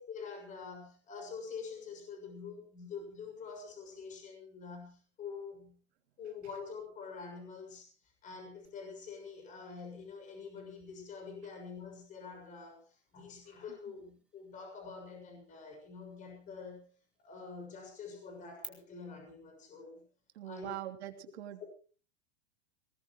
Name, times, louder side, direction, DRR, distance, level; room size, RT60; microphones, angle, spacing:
voice 1, 0.0-5.8 6.2-16.9 17.2-20.0 20.4-20.7, left 5 dB, 25° left, 5 dB, 6.7 m, -46 dB
sound 1, 8.6-18.7, right 1 dB, 5° right, 2.6 m, -60 dB
voice 2, 20.3-21.6, right 13 dB, 75° right, 5 dB, 3.1 m, -43 dB
21.5 x 19.0 x 3.1 m, 0.39 s
supercardioid pair, 165°, 33 cm